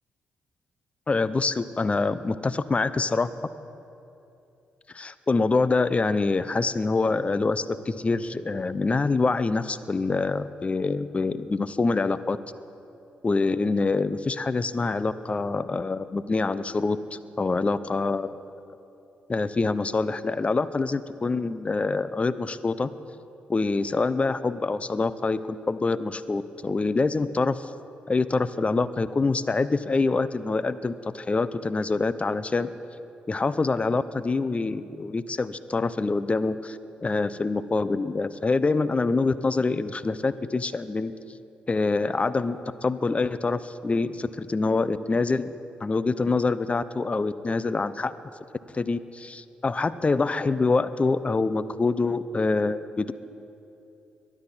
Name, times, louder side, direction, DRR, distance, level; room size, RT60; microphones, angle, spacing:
voice 1, 1.1-3.3 4.9-12.4 13.2-18.3 19.3-22.9 23.5-27.7 28.1-32.7 33.3-41.1 41.7-45.5 45.8-48.1 48.7-53.1, left 3 dB, 30° left, 14 dB, 0.8 m, -25 dB
22.5 x 13.0 x 4.3 m, 2.8 s
hypercardioid pair, 40°, 4 cm